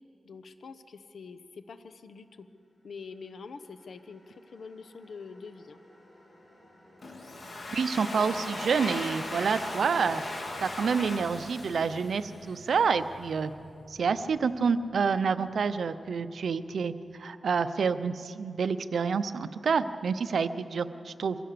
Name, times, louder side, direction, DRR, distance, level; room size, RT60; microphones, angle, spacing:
voice 1, 0.2-2.5 2.8-5.8, left 4 dB, 75° left, 11 dB, 1.0 m, -45 dB
sound 1, 2.8-18.0, left 1 dB, 30° left, 6.1 m, -57 dB
Domestic sounds home sounds, 7.0-12.6, left 2 dB, 55° left, 3.7 m, -38 dB
voice 2, 7.7-10.2 10.6-13.5 13.9-16.9 17.2-21.4, right 5 dB, 80° right, 12 dB, 0.7 m, -28 dB
23.5 x 16.0 x 6.8 m, 2.5 s
cardioid pair, 70°, 0 cm